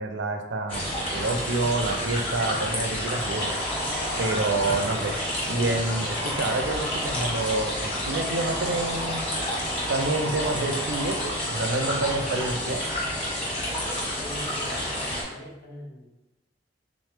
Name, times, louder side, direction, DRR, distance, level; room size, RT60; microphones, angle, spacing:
voice 1, 0.0-3.5 4.2-5.2 5.4-9.5 9.9-12.9, right 2 dB, 85° right, 5 dB, 0.5 m, -28 dB
sound 1, 0.7-15.2, left 1 dB, 30° left, 1.3 m, -30 dB
sound 2, 3.1-11.3, equal, ahead, 0.5 m, -37 dB
voice 2, 14.2-14.8 15.2-16.1, left 1 dB, 55° left, -3 dB, 0.8 m, -41 dB
3.6 x 3.1 x 3.3 m, 0.94 s
head